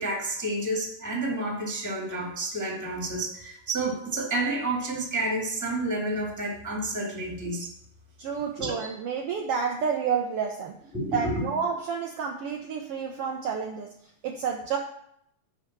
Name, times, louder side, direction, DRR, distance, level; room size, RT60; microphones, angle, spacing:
voice 1, 0.0-7.7 8.6-8.9 10.9-11.5, right 2 dB, 10° right, -1 dB, 1.3 m, -30 dB
voice 2, 8.2-10.8 11.1-13.9 14.2-14.8, right 6 dB, 85° right, 1 dB, 1.3 m, -30 dB
10.5 x 3.8 x 7.2 m, 0.71 s
omnidirectional pair, 3.7 m